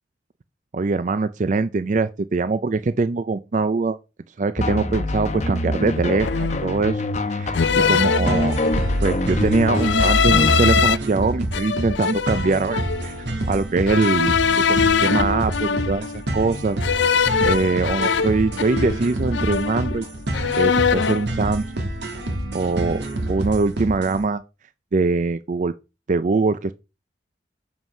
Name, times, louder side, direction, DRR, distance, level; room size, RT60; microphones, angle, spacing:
voice 1, 0.7-4.0 4.4-7.0 7.3-7.5 7.9-8.6 9.0-13.1 13.5-14.3 14.7-16.8 17.4-20.0 20.5-21.6 22.5-23.0 23.3-24.4 24.9-25.7 26.1-26.7, right 3 dB, 40° right, 0.4 m, -22 dB
sound 1, 4.6-10.8, left 1 dB, 40° left, 1.0 m, -24 dB
sound 2, 5.1-5.4 6.2-6.8 7.5-9.0 9.8-11.0 11.5-13.1 13.9-16.2 16.8-19.1 19.3-20.1 20.3-21.3, left 6 dB, 75° left, 0.5 m, -22 dB
sound 3, 8.3-24.2, right 1 dB, 65° right, 2.1 m, -28 dB
7.3 x 5.7 x 5.4 m
head